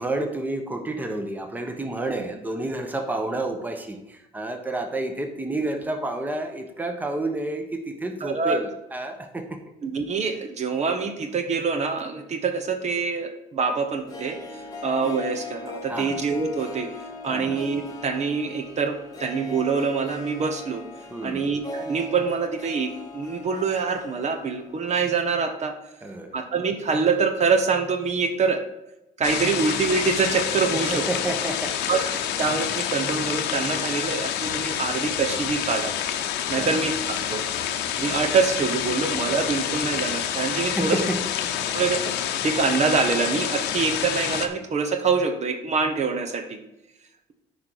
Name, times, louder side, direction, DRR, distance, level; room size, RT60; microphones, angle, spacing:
voice 1, 0.0-9.6 15.9-16.2 17.3-17.6 21.1-21.5 26.0-26.4 30.9-31.8 36.5-36.8 40.8-41.2 41.7-41.8, right 2 dB, 10° right, 5 dB, 1.1 m, -30 dB
voice 2, 8.2-8.6 9.8-16.9 17.2-20.9 21.2-25.8 26.3-28.6 29.2-31.0 31.9-32.1 32.4-35.9 36.5-37.4 38.0-41.1 41.7-46.6, right 5 dB, 40° right, 6 dB, 1.0 m, -25 dB
Harp, 13.9-24.9 25.2-25.3, left 2 dB, 20° left, 1.7 m, -39 dB
sound 1, 29.2-44.5, left 10 dB, 90° left, 0.8 m, -28 dB
9.4 x 5.1 x 4.6 m, 0.91 s
cardioid pair, 110°, 17 cm